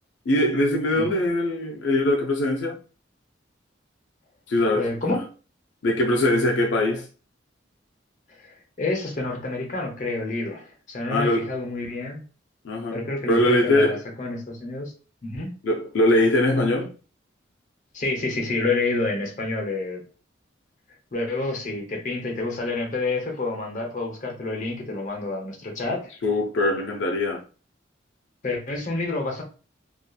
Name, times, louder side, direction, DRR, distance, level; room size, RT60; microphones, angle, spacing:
voice 1, 0.3-2.8 4.5-4.9 5.8-7.1 11.1-11.5 12.6-14.0 15.6-16.9 26.2-27.4, left 1 dB, 75° left, 0.4 m, -22 dB
voice 2, 4.7-5.2 8.4-12.2 12.9-14.9 15.2-15.5 17.9-20.0 21.1-26.1 28.4-29.4, left 2 dB, 40° left, 0.7 m, -28 dB
2.7 x 2.4 x 2.2 m
head